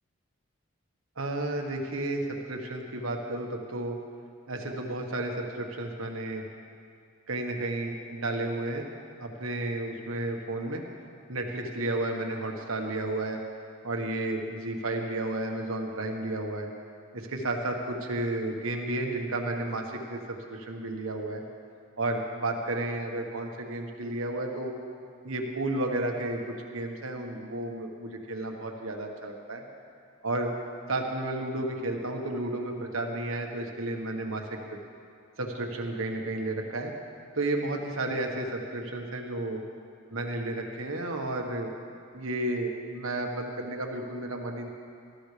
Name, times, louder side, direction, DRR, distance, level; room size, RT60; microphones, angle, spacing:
voice 1, 1.2-4.0 4.5-6.4 7.3-8.9 9.2-10.8 11.3-13.4 13.8-16.7 17.1-20.2 20.5-21.4 22.0-24.7 25.2-29.6 30.2-30.5 30.9-34.4 34.7-34.8 35.4-36.9 37.3-39.6 40.1-41.7 42.1-44.7, right 2 dB, 80° right, 2 dB, 1.4 m, -32 dB
19.0 x 13.5 x 3.4 m, 2.3 s
head